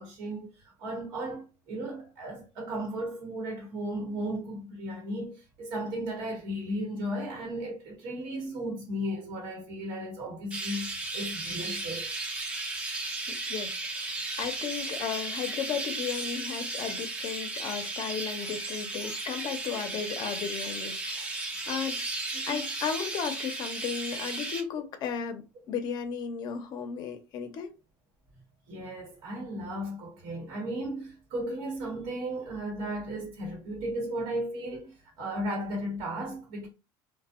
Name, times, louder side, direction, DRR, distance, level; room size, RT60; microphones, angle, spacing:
voice 1, 0.0-12.1 16.6-16.7 22.4-22.6 28.7-36.7, right 1 dB, 75° right, 1.0 m, -35 dB
Chirp tweet, 10.5-24.6, right 2 dB, 15° right, 0.5 m, -35 dB
voice 2, 13.5-22.0 22.5-27.7, left 7 dB, 50° left, 0.5 m, -35 dB
2.5 x 2.1 x 2.4 m
cardioid pair, 130°, 9 cm